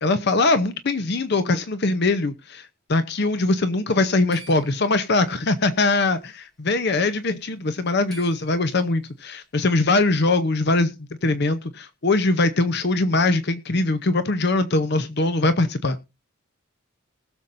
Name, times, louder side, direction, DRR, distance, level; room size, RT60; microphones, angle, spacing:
voice 1, 0.0-10.9 11.2-16.0, left 2 dB, 55° left, 12 dB, 0.7 m, -22 dB
sound 1, 3.9-5.6 6.6-6.8 7.1-7.2 7.7-8.9, right 3 dB, ahead, 4.4 m, -48 dB
20.0 x 7.0 x 2.6 m, 0.27 s
head